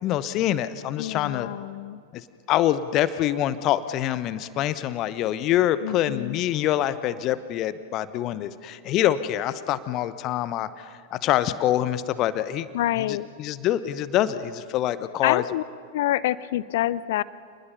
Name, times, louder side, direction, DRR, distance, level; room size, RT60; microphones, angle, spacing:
voice 1, 0.0-1.5 2.1-12.7 13.1-15.4, left 12 dB, 35° left, 15 dB, 0.9 m, -25 dB
voice 2, 1.0-2.0 5.8-6.4 12.7-13.3 15.2-15.6 15.9-17.2, left 14 dB, 55° left, 20 dB, 0.5 m, -27 dB
28.5 x 20.5 x 5.5 m, 2.2 s
figure-of-eight pair, 90°, 0 cm